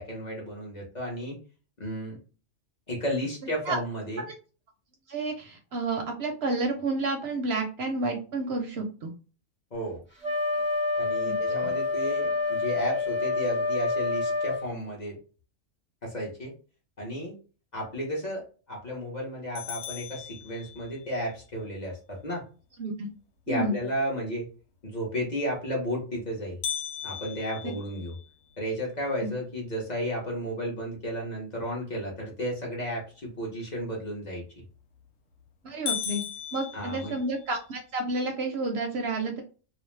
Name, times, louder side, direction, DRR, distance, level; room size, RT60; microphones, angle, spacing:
voice 1, 0.0-1.4 1.8-2.2 2.9-4.3 9.7-10.0 11.0-15.2 16.0-16.5 17.0-17.4 17.7-22.4 23.5-24.5 24.8-26.6 27.0-28.1 28.6-34.6 36.7-37.2, equal, 40° left, -3 dB, 0.8 m, -33 dB
voice 2, 5.1-9.1 11.3-11.4 11.6-11.7 22.8-22.9 23.5-23.8 27.6-27.7 35.6-36.2 36.5-39.4, right 2 dB, 65° right, 3 dB, 0.7 m, -30 dB
Wind instrument woodwind instrument, 10.2-14.7, left 3 dB, 10° left, 0.7 m, -27 dB
sound 1, 19.5-21.1 26.6-28.8 29.3-29.4 29.9-30.0 30.6-31.0 34.6-35.0 35.4-35.5 35.9-37.6, left 8 dB, 85° left, 1.0 m, -37 dB
2.5 x 2.0 x 3.1 m, 0.36 s
omnidirectional pair, 1.3 m